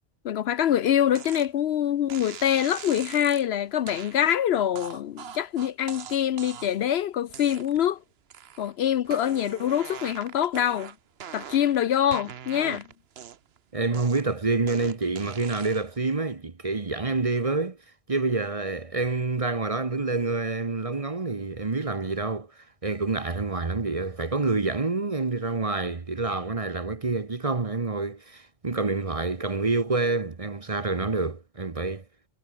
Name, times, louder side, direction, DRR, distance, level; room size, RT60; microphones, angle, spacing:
voice 1, 0.2-8.0 8.6-10.9 11.3-12.8, left 10 dB, 65° left, 0.8 m, -25 dB
sound 1, 1.1-1.5 2.1-3.5 3.9-4.1 4.7-6.9 7.3-7.9 8.3-8.7 9.0-11.8 12.1-13.6 13.9-16.0, right 8 dB, 60° right, 1.1 m, -42 dB
voice 2, 13.7-17.8 18.1-32.0, right 3 dB, 30° right, 1.1 m, -27 dB
omnidirectional pair, 1.2 m